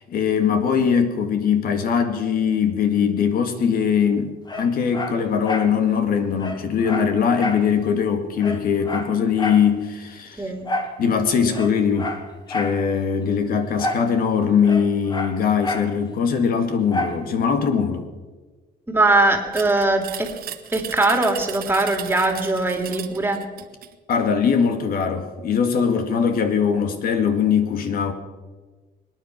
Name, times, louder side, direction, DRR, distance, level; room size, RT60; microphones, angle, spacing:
voice 1, 0.1-10.5 11.0-12.1 12.5-18.1 24.1-28.1, left 7 dB, 60° left, 7 dB, 2.0 m, -21 dB
Dog, 4.5-5.7 6.1-6.2 6.4-7.7 8.0-8.1 8.4-9.7 10.6-11.0 11.5-12.8 13.8-14.1 14.4-15.9 16.9-17.2 17.7-17.8, left 2 dB, 25° left, 1.9 m, -29 dB
voice 2, 18.9-20.3 20.7-23.4, right 2 dB, 10° right, 4 dB, 2.8 m, -21 dB
sound 1, 19.5-24.0, right 11 dB, 60° right, 1.2 m, -36 dB
24.5 x 9.6 x 6.0 m, 1.3 s
cardioid pair, 110°, 17 cm